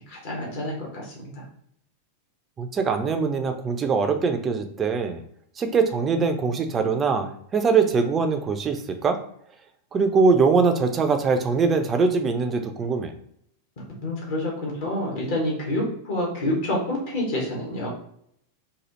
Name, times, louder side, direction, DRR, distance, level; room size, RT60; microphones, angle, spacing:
voice 1, 0.1-1.4 14.0-17.9, left 1 dB, 55° left, -3 dB, 1.4 m, -28 dB
voice 2, 2.6-5.2 5.6-9.2 9.9-13.1, right 4 dB, 25° right, 6 dB, 0.5 m, -22 dB
3.9 x 2.7 x 3.0 m, 0.69 s
figure-of-eight pair, 90°, 0 cm